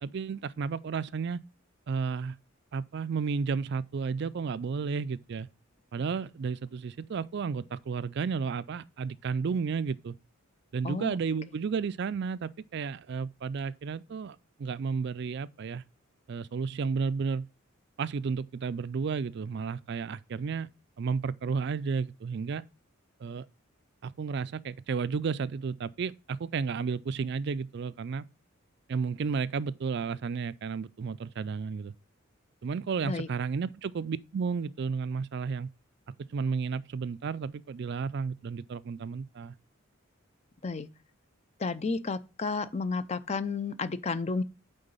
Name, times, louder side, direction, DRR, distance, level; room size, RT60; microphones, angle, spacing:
voice 1, 0.0-1.4 1.9-2.4 2.7-5.5 5.9-10.2 10.7-15.8 16.3-17.5 18.0-20.7 21.0-22.6 23.2-23.5 24.0-28.3 28.9-31.9 32.6-35.7 36.3-39.5, right 5 dB, 55° right, 0.4 m, -32 dB
voice 2, 10.8-11.2 33.0-33.3 40.6-40.9 41.6-44.4, left 4 dB, 30° left, 0.5 m, -32 dB
9.0 x 3.8 x 5.4 m
head